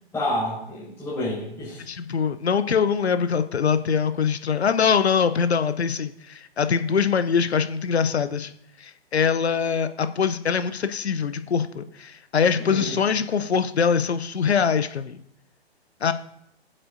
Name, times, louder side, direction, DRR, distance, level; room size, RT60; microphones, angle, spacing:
voice 1, 0.1-1.8 12.6-13.0, left 1 dB, 10° left, -11 dB, 4.4 m, -29 dB
voice 2, 1.8-8.5 8.8-15.2 16.0-16.1, left 6 dB, 75° left, 11 dB, 0.7 m, -23 dB
20.5 x 7.7 x 2.6 m, 0.75 s
figure-of-eight pair, 120°, 33 cm